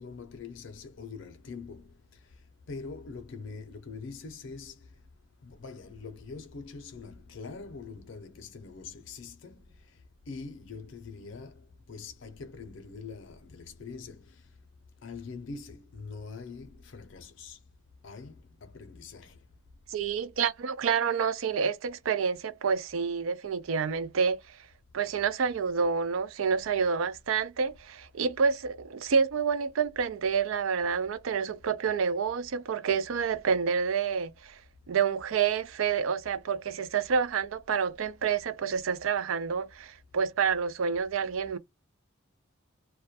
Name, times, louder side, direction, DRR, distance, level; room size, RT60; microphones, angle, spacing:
voice 1, 0.0-1.9 2.7-4.8 5.4-9.7 10.3-14.2 15.0-17.6 18.0-19.4, left 4 dB, 65° left, 0.5 m, -43 dB
voice 2, 19.9-24.4 24.9-34.6 34.9-41.6, right 6 dB, 90° right, 0.4 m, -28 dB
2.2 x 2.1 x 2.7 m
head